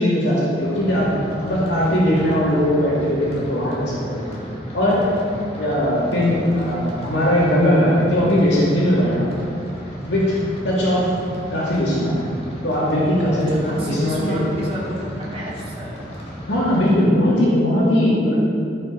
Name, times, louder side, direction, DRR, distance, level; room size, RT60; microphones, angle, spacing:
voice 1, 0.0-4.2 4.7-5.1 5.6-9.3 10.0-10.4 10.6-11.1 11.5-12.1 12.6-14.2 16.5-18.4, equal, 80° left, -8 dB, 2.4 m, -19 dB
sound 1, 0.6-17.0, equal, 35° left, 1.8 m, -35 dB
voice 2, 13.5-16.2, equal, 35° right, -6 dB, 2.5 m, -31 dB
15.0 x 5.5 x 4.0 m, 2.4 s
head